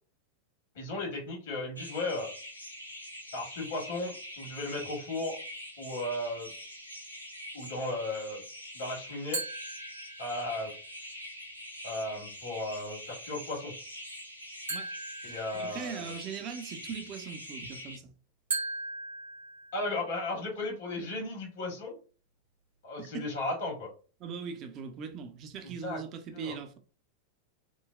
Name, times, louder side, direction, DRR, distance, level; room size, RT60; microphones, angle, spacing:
voice 1, 0.7-2.3 3.3-5.4 5.8-6.5 7.5-8.4 8.7-9.4 10.2-10.7 11.8-13.7 15.2-16.1 19.7-22.0 22.8-23.9 25.6-26.0 26.3-26.5, left 2 dB, 60° left, 1.4 m, -35 dB
sound 1, 1.8-18.0, equal, 90° left, 0.5 m, -45 dB
sound 2, 9.3-10.6 14.7-16.2 18.5-20.2, right 3 dB, 75° right, 1.2 m, -38 dB
voice 2, 15.3-18.1 23.0-23.3 24.2-26.8, right 6 dB, 35° right, 0.6 m, -40 dB
3.8 x 2.1 x 2.4 m
figure-of-eight pair, 90°, 0 cm